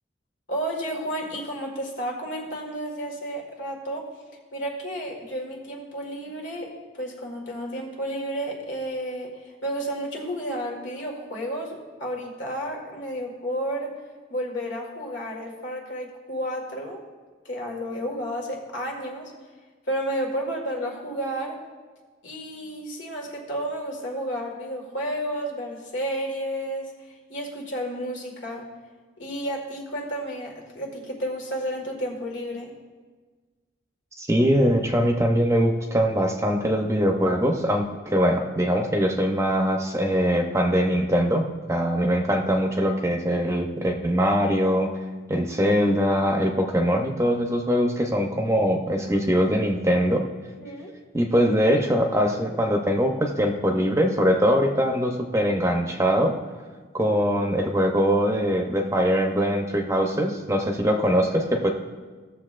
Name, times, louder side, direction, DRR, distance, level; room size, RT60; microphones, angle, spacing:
voice 1, 0.5-4.1 4.5-14.0 14.3-17.0 17.5-19.3 19.9-21.7 22.2-26.9 27.3-28.7 29.2-32.7 50.6-50.9, equal, 80° left, 0 dB, 1.7 m, -31 dB
voice 2, 34.2-44.9 45.3-50.3 51.1-56.3 56.9-61.7, equal, 15° right, 3 dB, 0.7 m, -22 dB
16.0 x 7.0 x 2.5 m, 1.4 s
head